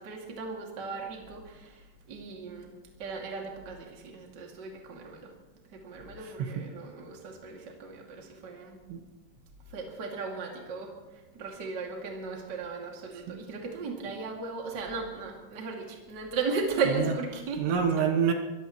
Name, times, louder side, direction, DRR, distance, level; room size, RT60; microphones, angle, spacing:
voice 1, 0.0-2.7 3.0-5.3 5.7-8.8 9.7-17.6, right 4 dB, 35° right, 0 dB, 2.0 m, -36 dB
voice 2, 6.2-6.7 8.9-9.0 13.1-13.4 16.9-17.1 17.6-18.3, right 7 dB, 75° right, 4 dB, 3.2 m, -27 dB
23.0 x 15.5 x 3.1 m, 1.1 s
omnidirectional pair, 5.2 m